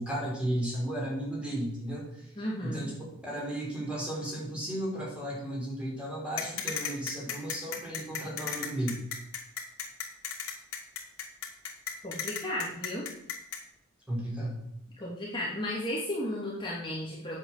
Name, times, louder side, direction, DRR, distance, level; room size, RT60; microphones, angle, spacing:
voice 1, 0.0-2.9 3.3-9.0 14.1-14.6, right 1 dB, 5° right, -4 dB, 5.7 m, -34 dB
voice 2, 2.4-2.9 12.0-13.1 15.0-17.4, left 1 dB, 25° left, -5 dB, 2.5 m, -34 dB
sound 1, 6.4-13.6, left 7 dB, 80° left, 2.7 m, -35 dB
9.5 x 7.4 x 8.2 m, 0.78 s
head